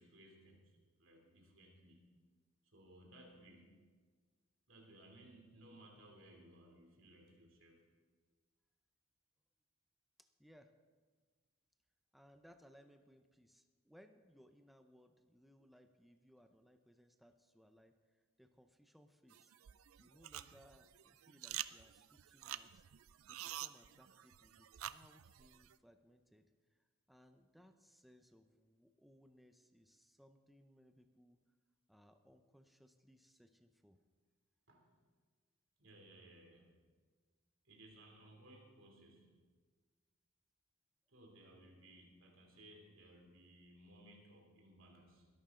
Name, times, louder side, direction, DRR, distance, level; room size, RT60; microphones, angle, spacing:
voice 1, 0.0-2.1 2.7-3.8 4.7-7.9 34.7-34.9 35.8-36.8 37.6-39.4 41.1-45.3, right 1 dB, 65° right, 1 dB, 3.0 m, -61 dB
voice 2, 10.2-10.7 12.1-19.5 20.0-22.8 23.3-31.4 31.9-34.0, equal, ahead, 7 dB, 0.6 m, -66 dB
sound 1, 19.3-25.8, right 13 dB, 85° right, 0.4 m, -49 dB
21.5 x 11.5 x 3.8 m, 1.5 s
head